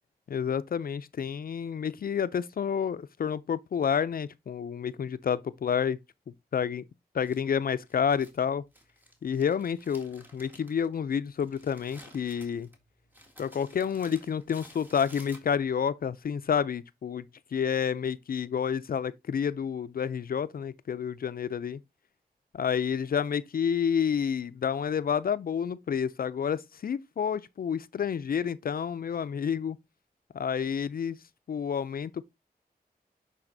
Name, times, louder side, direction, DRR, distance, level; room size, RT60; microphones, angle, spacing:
voice 1, 0.3-6.0 6.5-6.9 7.1-8.6 9.2-12.7 13.4-17.2 17.5-21.8 22.5-29.8 30.3-31.2 31.5-32.2, left 7 dB, 65° left, 0.4 m, -29 dB
Crumpling crinkling, 7.2-15.8, equal, 10° right, 1.9 m, -54 dB
11.0 x 4.1 x 2.6 m
wide cardioid pair, 65°, 16 cm